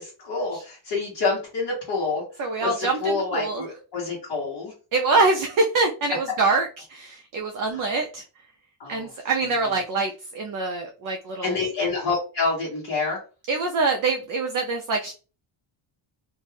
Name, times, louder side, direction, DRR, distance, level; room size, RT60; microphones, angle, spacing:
voice 1, 0.0-2.2 2.6-4.7 7.7-7.9 8.8-9.1 11.4-13.2, left 3 dB, 50° left, -7 dB, 1.1 m, -27 dB
voice 2, 2.4-3.6 4.9-8.2 8.9-11.6 13.5-15.1, right 3 dB, 45° right, 3 dB, 0.4 m, -25 dB
2.6 x 2.2 x 3.3 m, 0.34 s
cardioid pair, 160°, 49 cm